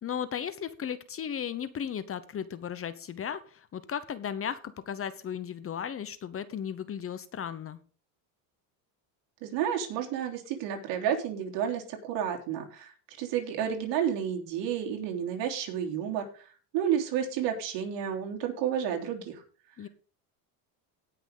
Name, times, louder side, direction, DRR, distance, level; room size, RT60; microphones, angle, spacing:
voice 1, 0.0-7.8 19.8-19.9, left 8 dB, 30° left, 13 dB, 0.9 m, -35 dB
voice 2, 9.4-19.4, right 9 dB, 70° right, 2 dB, 3.3 m, -31 dB
18.0 x 6.0 x 3.8 m, 0.40 s
cardioid pair, 125°, 45 cm